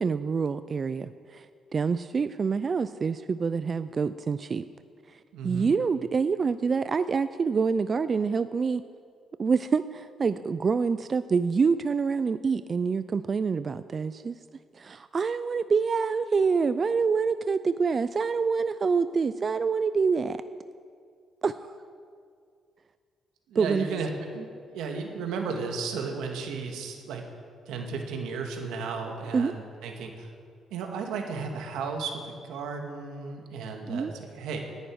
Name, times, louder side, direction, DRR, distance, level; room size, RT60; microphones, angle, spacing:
voice 1, 0.0-1.5 1.7-4.7 5.1-8.8 9.4-14.4 14.7-20.4 21.4-21.6 23.5-23.9 29.3-29.5 33.9-34.1, right 5 dB, 40° right, 13 dB, 0.4 m, -26 dB
voice 2, 5.3-5.7 23.5-27.3 27.7-30.3 30.7-34.7, right 4 dB, 90° right, 3 dB, 1.8 m, -34 dB
18.5 x 11.0 x 4.7 m, 2.2 s
cardioid pair, 90°, 0 cm